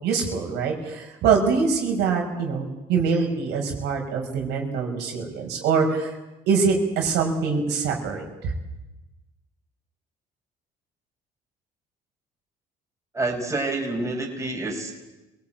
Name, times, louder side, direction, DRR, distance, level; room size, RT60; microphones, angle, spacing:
voice 1, 0.0-6.1 6.5-8.5, right 5 dB, 85° right, 1 dB, 5.6 m, -24 dB
voice 2, 13.1-14.9, right 2 dB, 15° right, 1 dB, 5.2 m, -27 dB
25.0 x 18.5 x 9.1 m, 1.1 s
cardioid pair, 110°, 17 cm